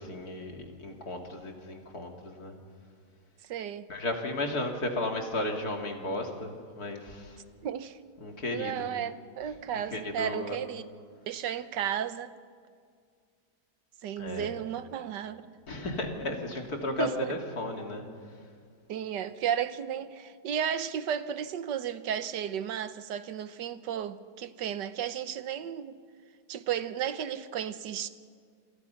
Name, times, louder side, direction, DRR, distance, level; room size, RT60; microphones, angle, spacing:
voice 1, 0.0-2.5 3.9-7.4 8.2-8.9 9.7-10.6 14.2-14.5 15.7-18.0, left 1 dB, 60° left, 3.2 m, -34 dB
voice 2, 3.4-3.9 7.6-8.0 8.5-10.9 11.3-12.4 14.0-15.5 17.0-17.3 18.9-26.0 26.5-28.1, right 9 dB, 85° right, 1.6 m, -34 dB
28.0 x 26.0 x 5.8 m
omnidirectional pair, 1.8 m